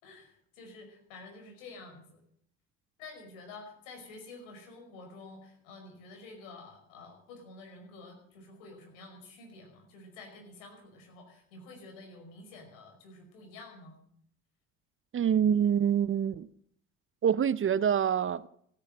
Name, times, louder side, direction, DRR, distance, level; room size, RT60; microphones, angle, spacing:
voice 1, 0.0-2.2 3.0-14.0, left 3 dB, 80° left, 5.3 m, -49 dB
voice 2, 15.1-16.5 17.2-18.5, right 8 dB, 30° right, 0.7 m, -26 dB
16.0 x 10.0 x 7.8 m
hypercardioid pair, 65°, 39 cm